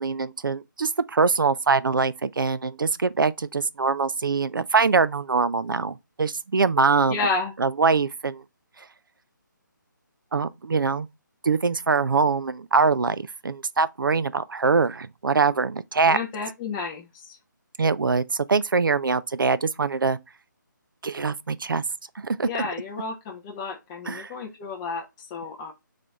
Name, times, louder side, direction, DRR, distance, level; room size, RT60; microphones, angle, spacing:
voice 1, 0.0-7.2 7.6-8.4 10.3-11.1 11.4-13.2 13.4-16.2 17.8-20.2 21.0-21.8 22.2-22.7 24.1-24.3, right 4 dB, 85° right, 0.4 m, -23 dB
voice 2, 7.1-7.5 16.1-17.4 22.4-25.7, left 4 dB, 15° left, 0.4 m, -31 dB
4.0 x 3.3 x 3.3 m
figure-of-eight pair, 155°, 11 cm